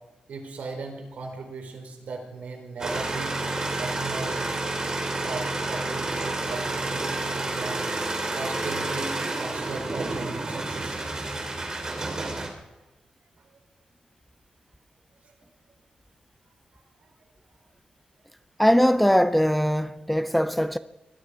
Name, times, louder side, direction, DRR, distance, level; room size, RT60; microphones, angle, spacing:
voice 1, 0.3-3.4 3.8-4.5 5.2-7.9 8.3-11.0 12.0-12.1, right 3 dB, 75° right, 4.2 m, -37 dB
sound 1, 2.8-12.5, right 2 dB, 25° right, 3.0 m, -30 dB
voice 2, 18.6-20.8, equal, 5° left, 0.5 m, -21 dB
20.5 x 14.0 x 4.9 m
wide cardioid pair, 145°, 2 cm